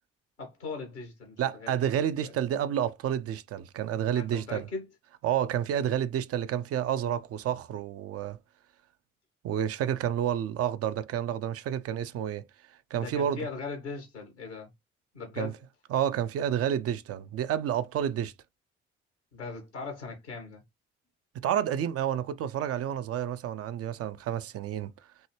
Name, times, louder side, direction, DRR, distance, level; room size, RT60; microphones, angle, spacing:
voice 1, 0.4-1.8 2.2-2.3 4.1-4.9 12.9-14.7 15.1-15.6 19.3-20.6, left 4 dB, 85° left, 1.6 m, -39 dB
voice 2, 1.4-4.7 5.2-8.4 9.4-12.4 12.9-13.4 15.4-15.5 15.9-18.3 21.3-24.9, right 10 dB, 45° right, 0.5 m, -30 dB
5.4 x 2.8 x 3.1 m
figure-of-eight pair, 40°, 33 cm